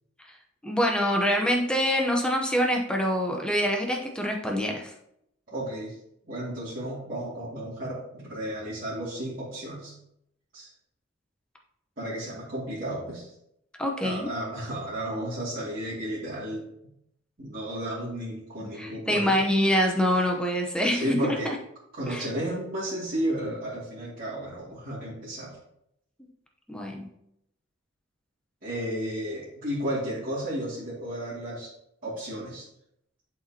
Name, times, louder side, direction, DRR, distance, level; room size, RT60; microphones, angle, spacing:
voice 1, 0.6-4.9 13.8-14.3 18.8-21.5 22.1-22.3 26.7-27.1, equal, 5° left, 1 dB, 0.8 m, -25 dB
voice 2, 5.5-5.9 6.3-9.9 10.5-10.7 12.0-13.3 14.0-16.7 17.4-19.4 20.9-21.5 21.9-25.6 28.6-31.7 32.0-32.6, right 1 dB, 45° right, -11 dB, 2.3 m, -33 dB
11.0 x 4.2 x 2.9 m, 0.77 s
head